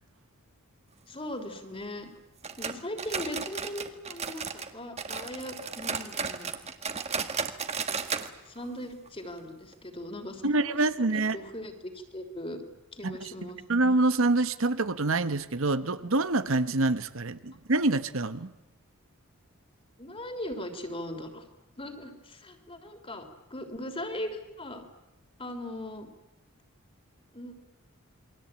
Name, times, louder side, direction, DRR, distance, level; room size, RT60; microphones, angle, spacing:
voice 1, 1.1-2.1 2.6-6.5 8.5-10.8 11.1-12.7 12.9-13.6 20.0-21.4 21.8-24.9 25.4-26.1 27.3-27.7, left 1 dB, 25° left, 6 dB, 3.4 m, -39 dB
sound 1, 2.4-4.7 5.0-8.3 8.6-8.7 9.1-9.2 9.7-9.8, right 5 dB, 30° right, 1.7 m, -34 dB
voice 2, 10.4-11.4 13.0-13.3 13.7-18.5, right 2 dB, 70° right, 12 dB, 1.2 m, -26 dB
28.5 x 22.5 x 8.9 m, 0.91 s
head